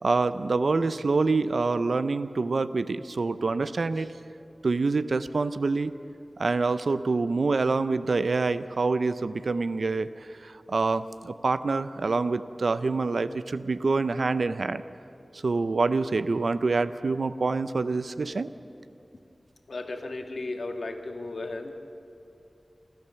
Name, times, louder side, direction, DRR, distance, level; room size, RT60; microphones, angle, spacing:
voice 1, 0.0-4.1 4.6-6.0 6.4-14.8 15.3-18.5, right 3 dB, 85° right, 13 dB, 0.6 m, -26 dB
voice 2, 19.7-21.8, left 2 dB, 80° left, 4 dB, 1.7 m, -35 dB
28.0 x 13.0 x 7.0 m, 2.6 s
wide cardioid pair, 70°, 0 cm